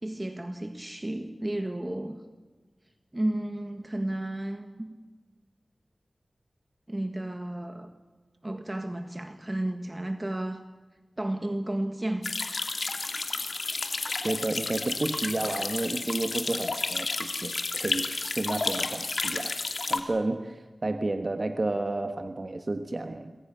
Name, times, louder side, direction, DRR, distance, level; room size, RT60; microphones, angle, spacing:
voice 1, 0.0-2.2 3.1-4.9 6.9-7.9 8.4-10.6 11.2-12.3, right 1 dB, 25° right, 7 dB, 1.7 m, -32 dB
sound 1, 12.2-20.0, left 3 dB, 65° left, 2.6 m, -31 dB
voice 2, 14.2-19.6 19.9-23.4, right 2 dB, 45° right, 8 dB, 1.3 m, -31 dB
27.5 x 21.0 x 6.8 m, 1.3 s
wide cardioid pair, 55°, 0 cm